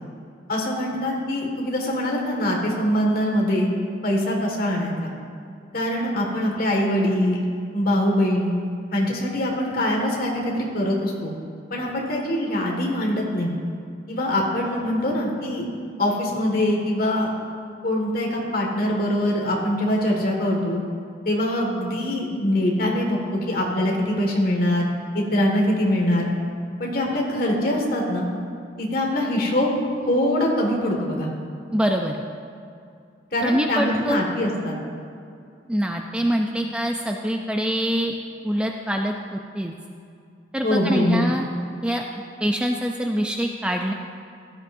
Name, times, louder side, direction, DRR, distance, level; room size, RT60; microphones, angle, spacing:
voice 1, 0.5-3.7 4.0-5.1 5.7-7.4 7.7-8.5 8.9-11.3 11.7-13.5 14.1-15.7 16.0-17.3 17.8-20.8 21.3-24.9 25.1-26.3 26.8-28.3 28.8-31.3 33.3-34.8 40.6-41.3, left 1 dB, 50° left, -1 dB, 1.8 m, -23 dB
voice 2, 31.7-32.2 33.4-34.2 35.7-38.1 38.4-39.7 40.5-41.5 41.8-42.0 42.4-43.9, equal, 5° right, 2 dB, 0.4 m, -24 dB
16.0 x 12.0 x 2.6 m, 2.4 s
head